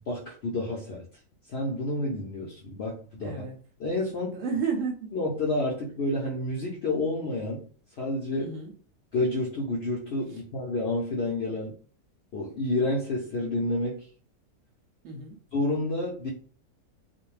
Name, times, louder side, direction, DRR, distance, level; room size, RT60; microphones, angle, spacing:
voice 1, 0.1-1.0 1.5-3.3 3.8-4.4 5.1-7.7 8.0-8.6 9.1-11.7 12.3-14.0 15.5-16.3, left 2 dB, 65° left, -3 dB, 0.6 m, -29 dB
voice 2, 3.2-3.6 4.1-5.1 8.4-8.7 10.3-10.4 15.0-15.4, right 5 dB, 70° right, 3 dB, 0.8 m, -32 dB
2.5 x 2.1 x 3.1 m, 0.41 s
omnidirectional pair, 1.6 m